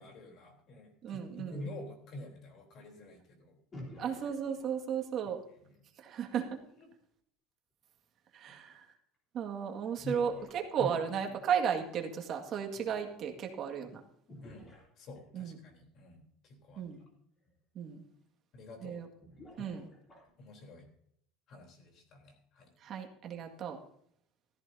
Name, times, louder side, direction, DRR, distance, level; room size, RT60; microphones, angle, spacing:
voice 1, 0.0-3.6 4.0-4.2 5.5-5.9 6.8-6.9 10.0-10.2 10.8-10.9 12.8-12.9 14.4-14.7 15.0-16.9 18.5-19.0 19.6-19.8 20.4-20.9 21.5-22.7, left 1 dB, 45° left, 2 dB, 3.6 m, -47 dB
voice 2, 1.0-1.7 4.0-5.4 6.0-6.6 8.3-8.9 9.3-14.0 15.3-15.6 16.8-17.0 17.8-18.0 18.8-19.1 19.6-19.9 22.8-23.8, right 7 dB, 40° right, 3 dB, 2.0 m, -35 dB
sound 1, 3.7-5.2 9.1-9.2 10.0-11.1 14.3-15.6 16.9-17.0 17.4-17.5 19.2-20.5, left 1 dB, 25° left, 3.7 m, -52 dB
16.0 x 14.0 x 2.8 m, 0.69 s
cardioid pair, 145°, 0 cm